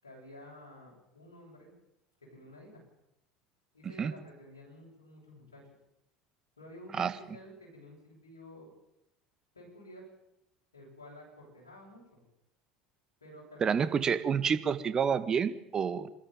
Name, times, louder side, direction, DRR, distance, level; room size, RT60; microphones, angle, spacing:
voice 1, 0.0-1.7 2.2-2.8 3.7-5.7 6.6-8.7 9.5-10.1 10.7-12.2 13.2-14.2, equal, 90° left, -4 dB, 7.8 m, -51 dB
voice 2, 13.6-16.1, right 7 dB, 35° right, 12 dB, 1.8 m, -28 dB
27.0 x 13.5 x 9.3 m, 0.85 s
hypercardioid pair, 75°, 2 cm